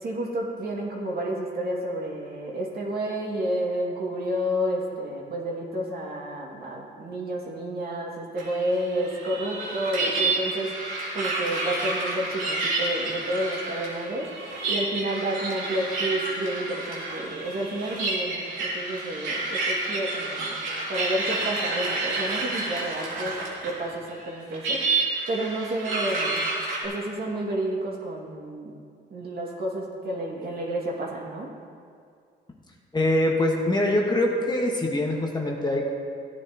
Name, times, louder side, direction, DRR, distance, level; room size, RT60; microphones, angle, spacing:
voice 1, 0.0-20.6 20.9-24.8 25.3-26.4 26.8-28.7 29.1-31.5, right 1 dB, 50° right, -3 dB, 2.4 m, -30 dB
sound 1, 8.4-23.8 24.1-26.8, right 2 dB, 85° right, 2.6 m, -29 dB
voice 2, 32.9-35.9, left 1 dB, 20° left, -1 dB, 1.5 m, -24 dB
16.5 x 10.0 x 3.0 m, 2.2 s
cardioid pair, 90°, 20 cm